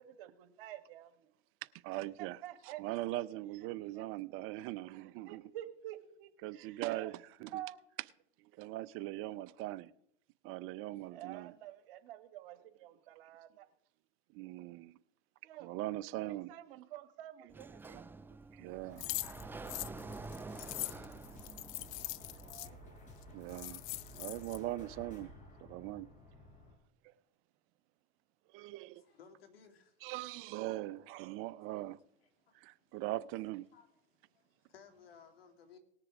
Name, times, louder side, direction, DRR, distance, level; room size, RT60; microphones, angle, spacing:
voice 1, 0.2-1.3 2.2-2.8 3.9-4.0 5.3-7.1 7.5-7.8 11.1-13.7 15.4-15.7 16.2-18.1 20.3-20.6 22.2-22.8, right 13 dB, 65° right, 1.6 m, -49 dB
voice 2, 1.8-5.4 6.4-7.6 8.4-9.9 10.4-11.5 14.3-15.0 15.6-16.5 17.8-18.0 18.5-19.1 23.3-23.8 24.2-25.3 25.6-26.1 27.0-27.1 28.5-29.0 30.0-32.0 32.5-33.7, right 16 dB, 45° right, 0.6 m, -41 dB
Sliding door, 17.5-22.5, right 3 dB, 5° right, 0.4 m, -48 dB
sound 1, 18.9-26.7, equal, 25° left, 4.7 m, -54 dB
sound 2, 19.0-22.7 23.2-23.3 23.5-24.6, left 20 dB, 50° left, 0.5 m, -42 dB
voice 3, 29.1-29.9 33.7-33.9 34.7-35.8, left 6 dB, 90° left, 2.2 m, -58 dB
19.0 x 6.8 x 5.0 m
hypercardioid pair, 110°, 29 cm